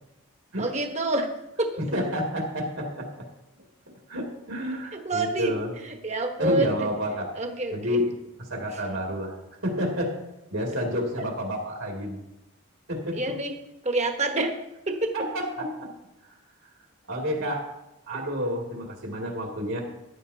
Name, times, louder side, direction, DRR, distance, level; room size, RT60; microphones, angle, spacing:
voice 1, 0.6-1.3 1.6-1.8 4.9-6.9 7.3-8.1 8.7-8.8 13.1-13.6 13.8-14.5 14.9-15.1, right 2 dB, 30° right, 4 dB, 1.2 m, -27 dB
voice 2, 1.9-3.2 4.1-5.7 6.4-7.3 7.7-8.1 8.4-9.4 9.6-10.1 10.5-12.2 12.9-13.2 15.1-15.9 17.1-17.6 18.1-19.8, equal, 70° right, -1 dB, 2.3 m, -29 dB
14.5 x 11.0 x 2.8 m, 0.92 s
head